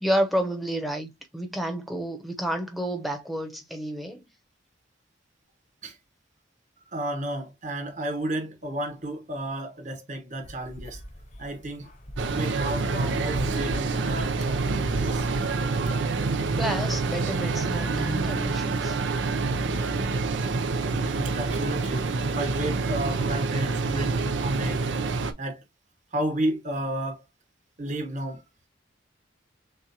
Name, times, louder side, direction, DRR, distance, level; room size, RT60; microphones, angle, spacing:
voice 1, 0.0-4.2 16.6-19.0, equal, ahead, 0.8 m, -30 dB
voice 2, 6.9-11.0 11.4-11.9 12.3-15.3 20.8-24.9 25.4-25.6 26.1-27.2 27.8-28.4, right 1 dB, 40° right, 1.2 m, -32 dB
sound 1, 10.4-15.9, equal, 40° left, 0.9 m, -39 dB
sound 2, 12.2-25.3, right 4 dB, 85° right, 0.6 m, -27 dB
6.5 x 2.4 x 2.8 m
head